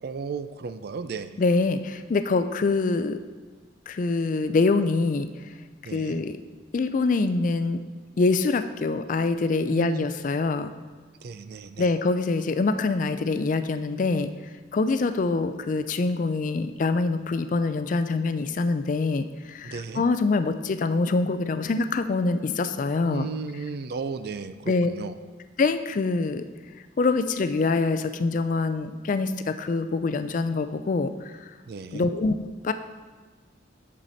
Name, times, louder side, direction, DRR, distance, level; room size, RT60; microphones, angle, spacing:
voice 1, 0.0-1.4 5.8-6.2 9.7-10.1 11.2-11.9 19.6-20.0 23.0-25.1 31.7-32.1, right 4 dB, 55° right, 11 dB, 0.4 m, -34 dB
voice 2, 1.4-3.2 3.9-5.3 5.9-6.4 6.7-7.8 8.2-10.7 11.8-14.3 14.7-23.3 24.7-24.9 25.6-26.4 27.0-31.4 31.9-32.3 32.6-32.7, left 3 dB, 40° left, 10 dB, 0.3 m, -25 dB
7.2 x 6.5 x 4.0 m, 1.4 s
head